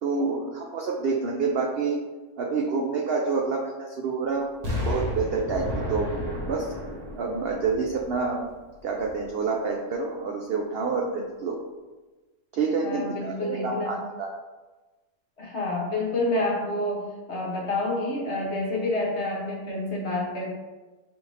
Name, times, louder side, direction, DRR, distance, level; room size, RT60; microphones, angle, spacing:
voice 1, 0.0-2.0 2.4-4.5 4.9-6.1 6.5-6.7 7.2-8.4 8.8-11.6 12.5-14.3, right 4 dB, 80° right, 0 dB, 0.5 m, -28 dB
Explosion, 4.6-8.6 9.0-9.1, left 1 dB, 30° right, 1.1 m, -32 dB
voice 2, 12.8-14.0 15.4-20.6, left 2 dB, 55° left, -2 dB, 1.0 m, -28 dB
6.1 x 2.5 x 3.2 m, 1.2 s
omnidirectional pair, 1.6 m